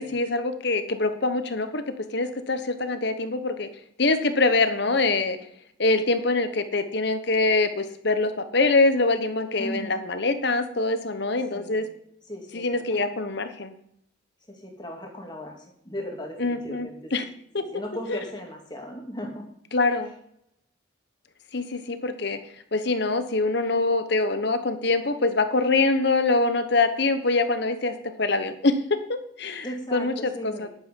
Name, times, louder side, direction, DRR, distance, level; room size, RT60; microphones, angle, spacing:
voice 1, 0.0-1.8 2.1-3.7 4.0-5.4 5.8-11.8 12.5-13.7 16.4-17.3 18.1-18.2 19.7-20.1 21.5-22.4 22.7-29.7 29.9-30.7, left 3 dB, 55° left, 10 dB, 1.1 m, -24 dB
voice 2, 9.6-10.0 11.5-11.9 12.3-13.0 14.5-15.6 15.8-17.1 17.6-19.5 19.8-20.0 29.6-30.7, equal, 20° left, 1 dB, 2.3 m, -37 dB
11.0 x 8.3 x 5.4 m, 0.75 s
head